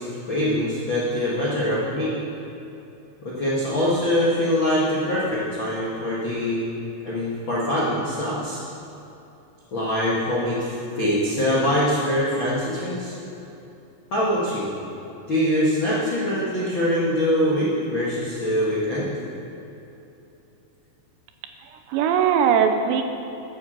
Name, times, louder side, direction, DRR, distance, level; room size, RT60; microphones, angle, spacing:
voice 1, 0.0-2.1 3.2-6.7 7.0-8.6 9.7-13.1 14.1-14.7 15.3-19.1, equal, 55° left, -7 dB, 1.3 m, -23 dB
voice 2, 21.6-23.1, right 7 dB, 80° right, 6 dB, 2.8 m, -20 dB
14.0 x 7.9 x 6.7 m, 2.9 s
omnidirectional pair, 5.3 m